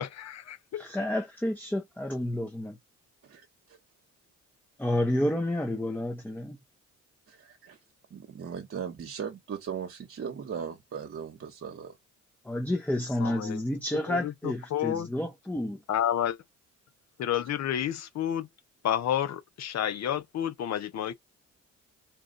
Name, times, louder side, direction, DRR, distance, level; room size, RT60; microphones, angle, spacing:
voice 1, 0.0-0.9 13.2-13.6 14.1-15.1 15.9-16.4 17.2-18.5 18.8-21.1, left 10 dB, 60° left, 0.8 m, -30 dB
voice 2, 0.8-2.8 4.8-6.6 12.4-15.8, left 1 dB, 5° left, 0.7 m, -30 dB
voice 3, 3.2-3.8 7.3-7.8 8.1-12.0, right 7 dB, 45° right, 1.1 m, -38 dB
4.2 x 2.5 x 3.9 m
cardioid pair, 90°, 30 cm